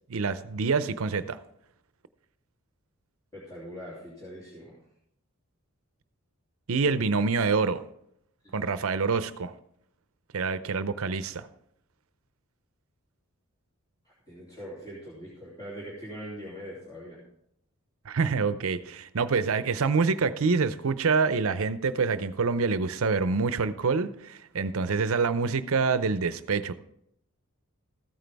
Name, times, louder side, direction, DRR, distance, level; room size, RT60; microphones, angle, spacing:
voice 1, 0.1-1.4 6.7-7.8 8.5-9.5 10.3-11.5 18.1-26.7, right 4 dB, 70° right, 0.6 m, -26 dB
voice 2, 3.3-4.8 8.4-8.7 14.3-17.2, equal, 20° left, 3.0 m, -42 dB
14.5 x 9.1 x 3.5 m
head